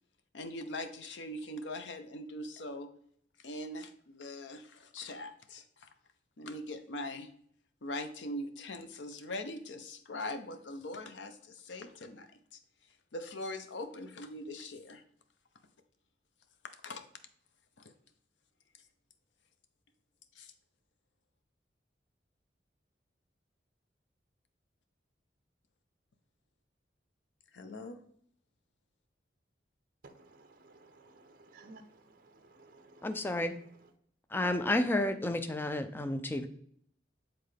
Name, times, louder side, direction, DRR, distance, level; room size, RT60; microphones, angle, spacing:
voice 1, 0.3-2.9 3.4-5.9 6.4-7.3 7.8-12.6 13.1-15.0 16.8-17.0 17.8-17.9 20.4-20.5 27.5-28.0, left 1 dB, 80° left, 8 dB, 0.6 m, -42 dB
voice 2, 30.0-33.1, right 2 dB, 50° right, 7 dB, 0.6 m, -57 dB
voice 3, 33.0-33.6 34.3-36.5, left 1 dB, 10° left, 8 dB, 0.3 m, -31 dB
7.7 x 3.8 x 3.3 m, 0.65 s
head